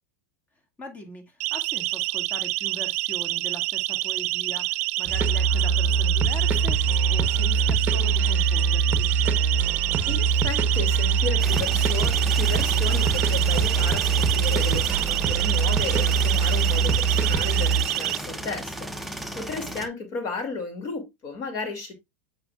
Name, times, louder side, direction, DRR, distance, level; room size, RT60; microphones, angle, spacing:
voice 1, 0.8-9.1 19.3-19.8, equal, 20° left, 2.0 m, -41 dB
Siren, 1.4-18.2, right 19 dB, 65° right, 0.4 m, -28 dB
sound 1, 5.1-17.8, right 5 dB, 25° right, 1.0 m, -23 dB
voice 2, 9.6-21.9, left 4 dB, 45° left, 2.5 m, -34 dB
sound 2, 11.4-19.9, right 1 dB, ahead, 0.7 m, -35 dB
7.7 x 5.4 x 2.4 m
hypercardioid pair, 115°, 8 cm